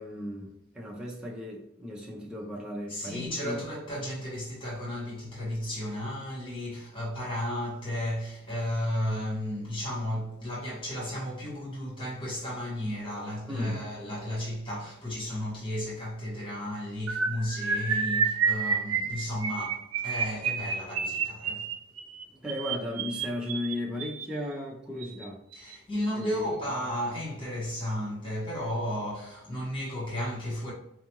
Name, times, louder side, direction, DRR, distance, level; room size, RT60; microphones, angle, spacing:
voice 1, 0.0-3.6 13.5-13.8 22.3-25.4 26.2-26.7, left 1 dB, 5° right, 0.6 m, -35 dB
voice 2, 2.9-21.7 25.5-30.7, left 1 dB, 25° left, 1.1 m, -34 dB
sound 1, 17.1-24.2 25.0-25.2 25.5-25.7 26.0-26.2, right 6 dB, 80° right, 0.5 m, -30 dB
4.6 x 2.4 x 2.9 m
head